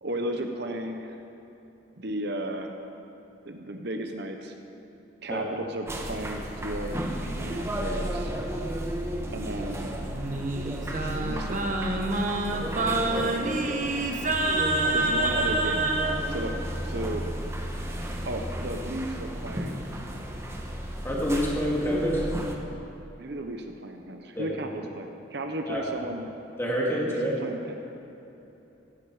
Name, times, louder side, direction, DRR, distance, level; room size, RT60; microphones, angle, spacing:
voice 1, 0.0-1.2 2.0-2.7 3.4-4.5 5.2-8.3 9.3-10.0 11.1-12.0 12.5-12.7 13.3-13.9 14.9-15.9 16.3-16.5 16.8-17.3 18.2-19.9 23.2-26.3 27.1-27.7, right 1 dB, 60° right, 4 dB, 1.0 m, -35 dB
sound 1, 5.9-22.6, right 1 dB, 15° right, 1.2 m, -33 dB
Singing, 10.1-16.2, right 2 dB, 40° right, 1.2 m, -27 dB
voice 2, 21.0-22.2 24.4-24.5 25.7-25.9 26.6-27.3, equal, 15° left, -4 dB, 2.7 m, -27 dB
16.5 x 14.0 x 5.0 m, 3.0 s
head